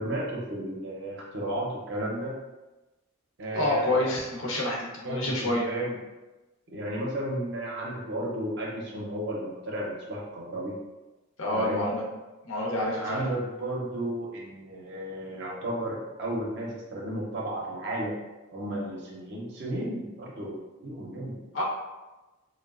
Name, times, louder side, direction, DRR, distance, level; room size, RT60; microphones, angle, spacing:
voice 1, 0.0-2.4 3.4-4.1 5.0-6.0 6.7-10.8 11.5-11.9 12.9-18.2 18.5-21.6, right 1 dB, 55° right, -3 dB, 0.5 m, -33 dB
voice 2, 3.5-5.7 11.4-12.1 12.4-13.2 21.5-21.6, left 1 dB, 70° left, -3 dB, 0.7 m, -28 dB
3.0 x 2.1 x 2.3 m, 1.1 s
head